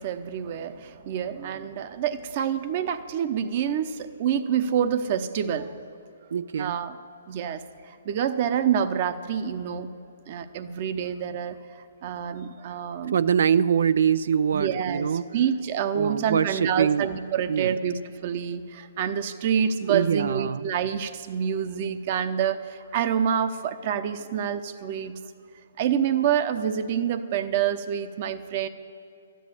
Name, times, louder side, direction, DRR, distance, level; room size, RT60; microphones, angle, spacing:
voice 1, 0.0-5.7 6.6-7.0 7.3-9.9 10.3-13.2 14.5-15.1 15.3-25.2 25.8-28.7, right 8 dB, 45° right, 10 dB, 0.8 m, -27 dB
voice 2, 6.3-6.8 13.1-15.3 15.9-17.1 17.5-17.8 19.9-20.7, right 7 dB, 65° right, 15 dB, 0.3 m, -24 dB
13.5 x 10.0 x 8.4 m, 2.6 s
hypercardioid pair, 140°, 0 cm